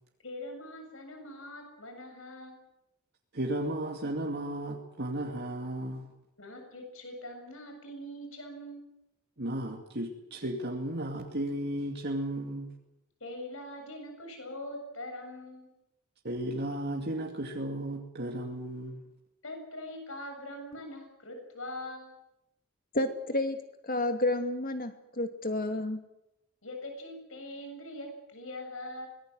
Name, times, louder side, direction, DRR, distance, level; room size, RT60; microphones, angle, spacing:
voice 1, 0.2-2.6 6.4-8.9 13.2-15.7 19.4-22.2 26.6-29.1, left 1 dB, 60° left, 4 dB, 7.2 m, -42 dB
voice 2, 3.3-6.1 9.4-12.7 16.2-19.0, right 1 dB, 50° right, 0 dB, 2.5 m, -34 dB
voice 3, 22.9-23.6 23.8-26.0, left 1 dB, 40° left, 7 dB, 2.5 m, -30 dB
24.5 x 20.0 x 8.0 m, 0.87 s
head